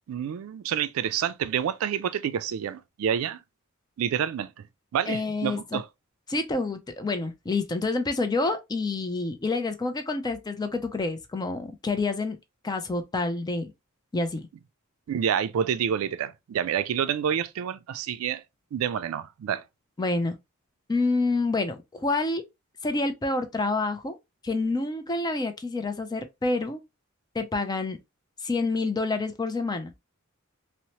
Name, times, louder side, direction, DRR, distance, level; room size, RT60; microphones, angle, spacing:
voice 1, 0.1-3.4 4.0-4.7 4.9-5.9 15.1-18.4 18.7-19.6, right 8 dB, 85° right, 0.3 m, -28 dB
voice 2, 5.1-5.8 6.3-12.4 12.6-13.7 14.1-14.5 20.0-20.4 20.9-22.4 22.8-24.2 24.4-26.8 27.3-28.0 28.4-29.9, left 3 dB, 20° left, 0.4 m, -28 dB
2.8 x 2.1 x 2.9 m
head